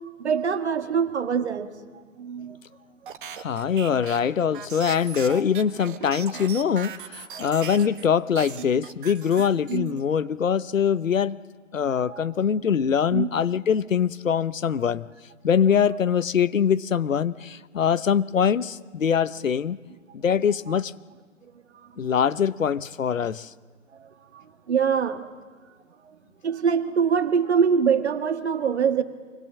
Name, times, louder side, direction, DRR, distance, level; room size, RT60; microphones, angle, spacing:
voice 1, 0.2-1.7 2.2-2.6 7.3-7.5 8.8-8.9 9.7-10.0 11.9-12.3 13.1-13.3 22.0-22.1 23.9-25.3 26.4-29.0, right 6 dB, 55° right, 8 dB, 1.8 m, -24 dB
sound 1, 3.1-8.1 8.3-10.0, right 8 dB, 40° right, 1.4 m, -39 dB
voice 2, 3.3-11.4 11.7-15.1 15.4-19.8 20.1-20.9 22.0-23.5, left 7 dB, 75° left, 17 dB, 0.9 m, -23 dB
25.0 x 21.0 x 7.5 m, 1.5 s
figure-of-eight pair, 140°, 39 cm